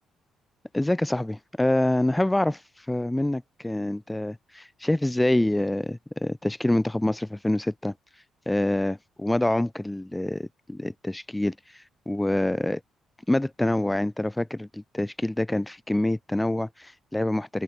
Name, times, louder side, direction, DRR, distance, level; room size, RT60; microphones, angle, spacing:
voice 1, 0.7-7.9 8.4-12.8 13.3-17.6, left 1 dB, 10° left, 5.0 m, -26 dB
open air
cardioid pair, 90°, 0 cm